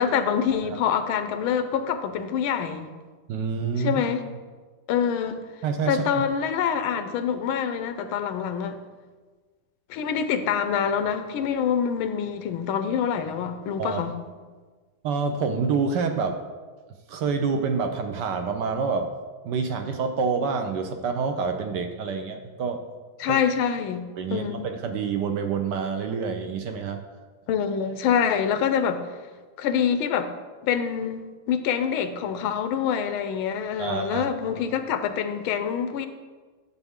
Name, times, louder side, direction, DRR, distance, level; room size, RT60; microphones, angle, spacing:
voice 1, 0.0-2.9 3.8-4.2 4.9-5.4 5.9-8.8 9.9-14.2 23.2-24.7 27.5-29.0 29.6-30.3 30.6-36.1, left 7 dB, 90° left, 9 dB, 1.5 m, -26 dB
voice 2, 3.3-4.0 5.6-6.2 13.8-14.0 15.0-16.4 17.1-19.1 19.4-22.8 23.3-23.4 24.2-27.0 33.8-34.3 34.5-34.6, right 5 dB, 70° right, 6 dB, 1.1 m, -27 dB
10.5 x 6.8 x 3.6 m, 1.4 s
omnidirectional pair, 2.2 m